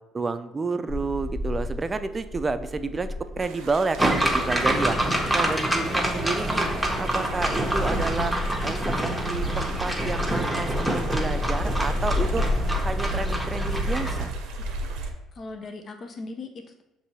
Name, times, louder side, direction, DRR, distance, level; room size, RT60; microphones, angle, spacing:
voice 1, 0.1-5.0 5.3-6.7 7.0-8.3 8.6-12.5 12.8-14.4, right 3 dB, 30° right, 11 dB, 0.4 m, -30 dB
sound 1, 0.9-13.3, left 2 dB, 60° left, 1.4 m, -33 dB
sound 2, 3.4-15.1, right 1 dB, 75° right, 0.6 m, -34 dB
sound 3, 4.0-14.2, right 1 dB, 5° right, 0.9 m, -27 dB
voice 2, 15.3-16.8, left 3 dB, 45° left, 5 dB, 0.5 m, -39 dB
6.4 x 2.7 x 2.9 m, 1.0 s
hypercardioid pair, 60°, 0 cm